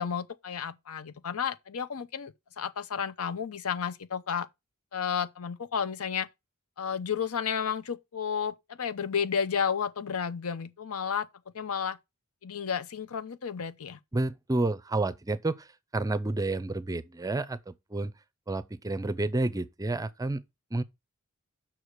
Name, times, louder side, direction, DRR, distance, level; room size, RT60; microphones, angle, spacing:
voice 1, 0.0-4.5 4.9-6.3 6.8-11.3 11.5-12.0 12.4-14.0, left 7 dB, 80° left, 0.7 m, -32 dB
voice 2, 14.1-15.7 15.9-18.1 18.5-20.4 20.7-20.8, right 2 dB, 15° right, 0.5 m, -30 dB
6.1 x 4.7 x 6.6 m
head